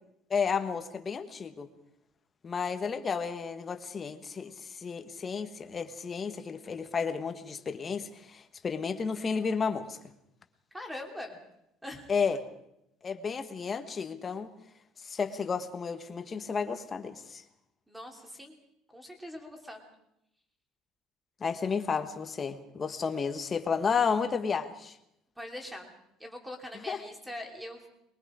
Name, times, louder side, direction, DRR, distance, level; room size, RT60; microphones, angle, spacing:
voice 1, 0.3-1.7 2.4-10.0 12.1-12.4 13.0-14.5 15.0-17.4 21.4-25.0 26.9-27.0, left 5 dB, 20° left, 7 dB, 1.3 m, -32 dB
voice 2, 10.7-11.4 11.8-12.1 17.9-18.6 18.9-19.8 25.4-25.9 26.2-27.9, left 1 dB, 5° right, 3 dB, 2.9 m, -42 dB
23.5 x 22.0 x 5.0 m, 0.81 s
cardioid pair, 165°, 0 cm